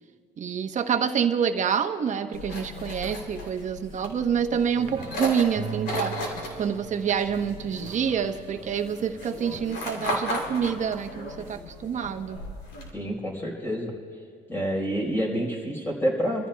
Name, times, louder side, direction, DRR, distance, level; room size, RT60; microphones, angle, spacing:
voice 1, 0.4-6.2 6.6-12.4, right 7 dB, 45° right, 7 dB, 1.0 m, -27 dB
sound 1, 2.3-12.9, left 1 dB, 80° left, 3.3 m, -36 dB
sound 2, 4.8-10.2, right 6 dB, 25° right, 0.7 m, -41 dB
voice 2, 12.9-13.9 14.5-16.5, equal, 15° left, -2 dB, 4.4 m, -28 dB
27.5 x 14.5 x 2.3 m, 2.4 s
cardioid pair, 110°, 17 cm